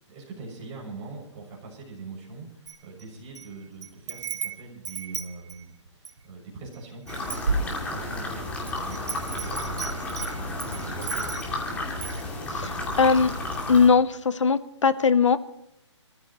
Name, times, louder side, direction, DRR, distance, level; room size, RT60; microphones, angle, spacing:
voice 1, 0.1-8.4 8.7-9.0 9.3-9.9 10.3-11.8, right 4 dB, 25° right, -2 dB, 7.1 m, -43 dB
Wind chime, 2.7-3.5 3.8-6.2 6.7-6.8 7.1-8.2 8.7-11.6 12.0-12.2, right 4 dB, 70° right, 2.1 m, -33 dB
sound 1, 7.1-13.9, left 2 dB, 10° left, 2.6 m, -32 dB
voice 2, 12.5-13.3 13.7-15.4, left 5 dB, 80° left, 12 dB, 1.2 m, -20 dB
26.0 x 14.5 x 3.1 m, 0.77 s
hypercardioid pair, 155°, 15 cm